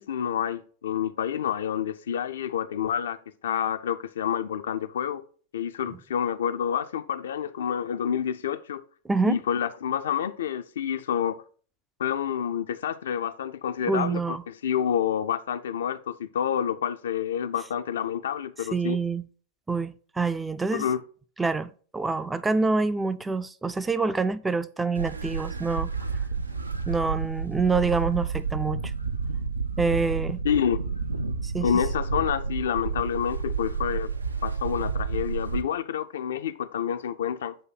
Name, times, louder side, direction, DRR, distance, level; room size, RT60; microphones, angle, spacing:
voice 1, 0.0-3.2 3.4-5.3 5.5-8.8 9.2-11.4 12.0-19.0 20.7-21.0 30.4-30.8 31.6-34.1 34.4-37.6, left 8 dB, 65° left, 0.4 m, -28 dB
voice 2, 9.1-9.4 13.9-14.4 18.7-19.2 19.7-20.9 21.4-25.9 26.9-28.9 29.8-30.4 31.4-31.7, right 4 dB, 10° right, 0.3 m, -26 dB
sound 1, 24.9-35.6, right 5 dB, 80° right, 0.5 m, -30 dB
7.7 x 2.7 x 5.7 m
figure-of-eight pair, 95°, 0 cm